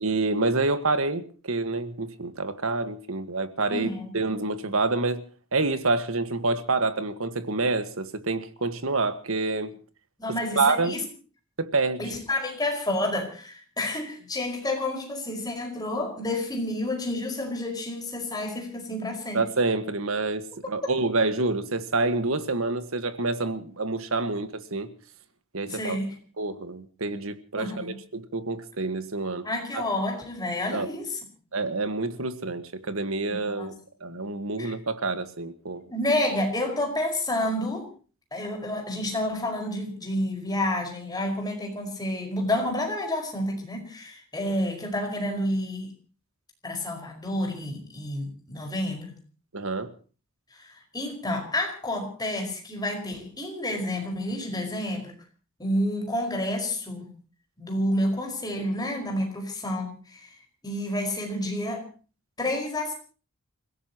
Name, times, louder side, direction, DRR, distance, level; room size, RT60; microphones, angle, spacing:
voice 1, 0.0-5.2 5.5-9.7 10.5-11.0 11.6-12.1 19.3-24.9 25.5-26.0 26.4-29.5 29.7-29.8 30.7-30.9 31.5-33.7 34.0-35.8 49.5-49.9, right 3 dB, 75° right, 1.6 m, -27 dB
voice 2, 3.7-4.1 10.2-11.0 12.0-19.4 25.7-26.2 27.6-28.0 29.4-31.2 33.3-33.7 34.6-34.7 35.9-37.9 38.3-45.9 46.6-49.1 50.5-55.1 55.6-57.1 57.6-60.3 60.6-61.9 62.4-62.9, left 1 dB, 20° left, 5.1 m, -29 dB
29.0 x 16.5 x 3.0 m
head